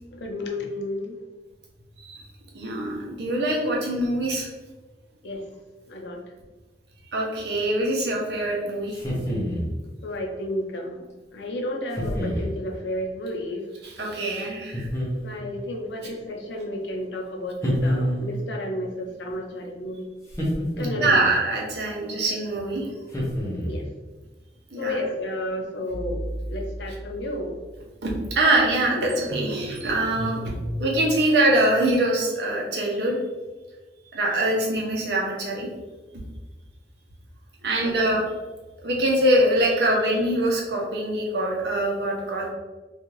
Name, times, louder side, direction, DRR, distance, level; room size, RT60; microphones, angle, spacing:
voice 1, 0.1-1.2 5.2-5.4 5.9-6.2 10.0-11.0 11.3-13.6 15.2-20.1 20.8-21.3 21.9-22.0 23.6-23.8 24.8-26.2 26.5-27.6 37.8-37.9, left 1 dB, 75° left, 1 dB, 0.5 m, -32 dB
voice 2, 2.5-4.5 7.1-9.0 13.8-14.9 16.0-16.1 20.9-22.9 24.7-25.0 28.0-30.5 30.8-33.2 34.1-35.7 37.6-38.2 38.8-42.4, right 1 dB, 70° right, -2 dB, 0.7 m, -23 dB
sound 1, 8.9-9.8 11.9-12.5 14.7-15.5 17.6-18.5 20.3-21.3 23.1-23.9, equal, 15° left, 0.6 m, -27 dB
sound 2, 25.9-27.8 28.3-28.4 28.7-32.2, right 1 dB, 40° right, 0.3 m, -35 dB
2.6 x 2.3 x 3.1 m, 1.2 s
head